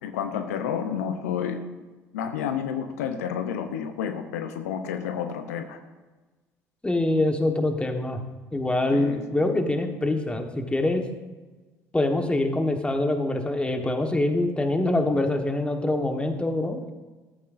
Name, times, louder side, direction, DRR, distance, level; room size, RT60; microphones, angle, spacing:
voice 1, 0.0-1.6 2.1-5.8 8.9-9.2, left 8 dB, 85° left, 7 dB, 0.7 m, -30 dB
voice 2, 6.8-8.2 8.5-11.0 11.9-16.9, left 2 dB, 15° left, 4 dB, 1.4 m, -24 dB
14.0 x 8.4 x 2.6 m, 1.2 s
hypercardioid pair, 60°, 8 cm